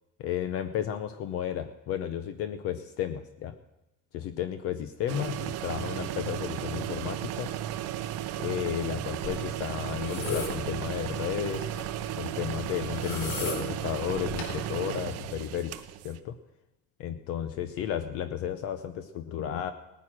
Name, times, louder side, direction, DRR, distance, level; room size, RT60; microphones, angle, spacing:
voice 1, 0.2-3.5 4.1-7.5 8.4-11.7 12.2-15.7 16.0-16.4 17.0-19.7, left 10 dB, 50° left, 10 dB, 0.8 m, -33 dB
sound 1, 5.1-16.2, right 12 dB, 55° right, 0.8 m, -35 dB
sound 2, 9.2-14.5, left 3 dB, 75° left, 5.0 m, -38 dB
18.5 x 9.4 x 6.1 m, 0.93 s
cardioid pair, 165°, 31 cm